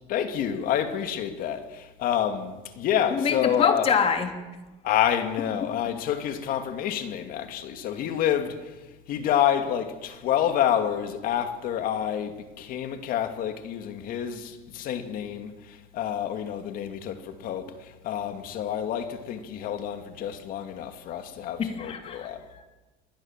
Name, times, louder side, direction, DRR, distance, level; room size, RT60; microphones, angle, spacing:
voice 1, 0.1-3.9 4.8-8.7 9.1-22.4, left 10 dB, 50° left, 2.7 m, -28 dB
voice 2, 3.1-4.3 21.6-22.6, left 7 dB, 30° left, 3.1 m, -25 dB
26.5 x 22.0 x 7.6 m
cardioid pair, 160°, 19 cm